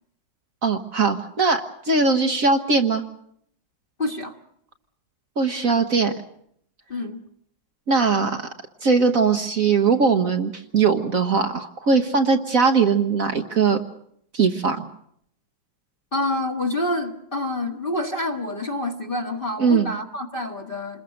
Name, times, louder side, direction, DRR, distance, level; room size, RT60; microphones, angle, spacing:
voice 1, 0.6-3.0 5.4-6.1 7.9-8.5 8.8-13.8 14.3-14.8 19.6-19.9, right 4 dB, 50° right, 5 dB, 1.4 m, -20 dB
voice 2, 4.0-4.4 6.9-7.2 16.1-21.0, left 1 dB, 30° left, 3 dB, 1.7 m, -27 dB
27.5 x 21.0 x 6.5 m, 0.70 s
omnidirectional pair, 2.0 m